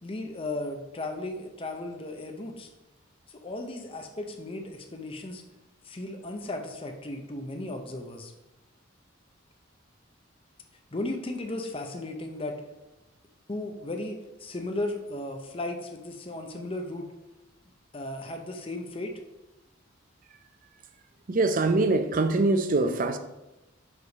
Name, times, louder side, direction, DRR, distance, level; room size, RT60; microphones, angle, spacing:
voice 1, 0.0-2.7 3.3-5.4 5.8-8.3 10.9-12.6 13.5-17.1 17.9-19.1, left 2 dB, 25° left, 0.6 m, -35 dB
voice 2, 21.3-23.2, right 2 dB, 40° right, 0.5 m, -23 dB
4.9 x 4.8 x 5.3 m
head